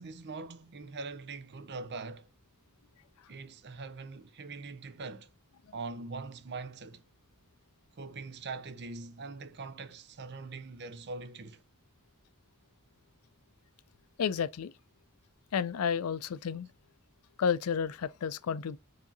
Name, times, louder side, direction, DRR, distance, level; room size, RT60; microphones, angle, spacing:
voice 1, 0.0-2.3 3.3-5.3 5.7-7.0 8.0-11.6, right 3 dB, 50° right, 0.6 m, -42 dB
voice 2, 14.2-14.7 15.5-16.7 17.4-18.8, left 7 dB, 80° left, 0.4 m, -31 dB
4.8 x 2.8 x 3.9 m
head